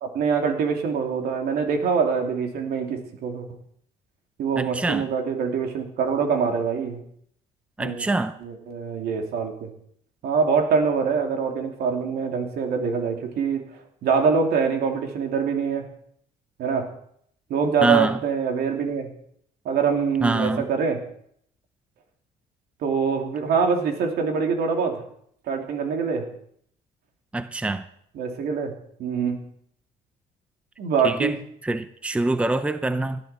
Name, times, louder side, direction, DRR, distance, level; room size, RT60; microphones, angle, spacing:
voice 1, 0.0-3.5 4.4-7.0 7.8-8.1 8.4-9.7 10.2-13.6 14.0-15.9 16.6-16.9 17.5-19.1 19.6-21.0 22.8-25.0 25.5-26.3 28.1-28.7 29.0-29.5 30.8-31.4, right 6 dB, 70° right, 2.9 m, -24 dB
voice 2, 4.6-5.1 7.8-8.3 17.8-18.2 20.2-20.7 27.3-27.8 31.0-31.4 31.6-33.2, right 2 dB, 5° right, 0.7 m, -24 dB
18.5 x 11.5 x 4.4 m
cardioid pair, 110°, 17 cm